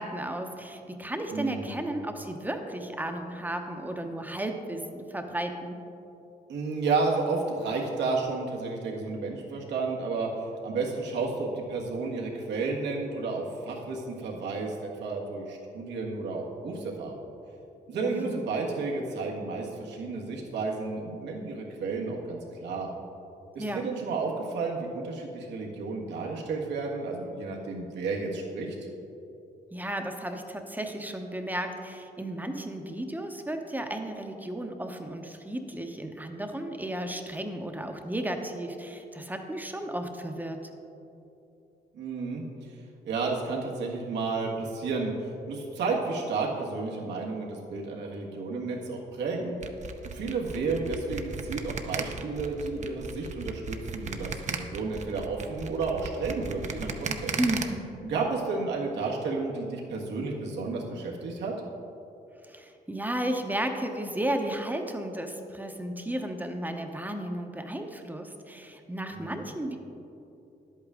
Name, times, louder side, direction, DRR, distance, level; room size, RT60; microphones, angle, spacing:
voice 1, 0.0-5.8 18.1-18.4 23.6-23.9 29.7-40.7 57.4-57.9 62.4-69.8, right 1 dB, 10° right, 5 dB, 0.8 m, -34 dB
voice 2, 1.3-1.7 6.5-17.1 17.9-22.9 23.5-28.8 41.9-42.4 43.0-49.5 50.1-57.3 58.0-61.5 69.1-69.5, right 4 dB, 85° right, -1 dB, 1.5 m, -32 dB
sound 1, 49.6-57.6, right 5 dB, 40° right, 0.7 m, -35 dB
10.5 x 8.4 x 3.7 m, 2.8 s
cardioid pair, 95°, 18 cm